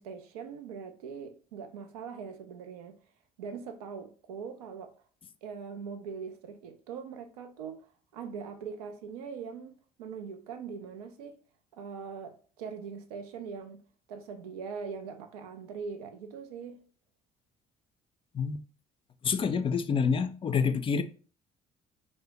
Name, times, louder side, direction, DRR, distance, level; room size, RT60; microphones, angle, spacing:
voice 1, 0.0-3.0 3.4-4.9 5.4-7.8 8.1-11.4 11.7-13.8 14.1-16.8, right 6 dB, 85° right, 0.4 m, -41 dB
voice 2, 19.2-21.0, left 6 dB, 30° left, 0.3 m, -27 dB
2.5 x 2.0 x 3.2 m
hypercardioid pair, 55°, 19 cm